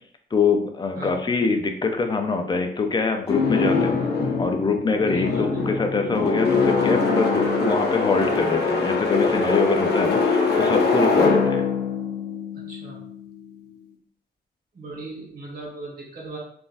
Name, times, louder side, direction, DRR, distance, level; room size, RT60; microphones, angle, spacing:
voice 1, 0.3-4.0 4.4-11.6, left 4 dB, 25° left, 5 dB, 0.5 m, -24 dB
sound 1, 3.3-13.2, left 4 dB, 80° left, 0.7 m, -23 dB
voice 2, 5.1-5.6 11.2-11.3 12.7-13.0 14.7-16.4, right 2 dB, 55° right, -3 dB, 1.4 m, -38 dB
3.8 x 2.5 x 2.5 m, 0.63 s
cardioid pair, 90°, 17 cm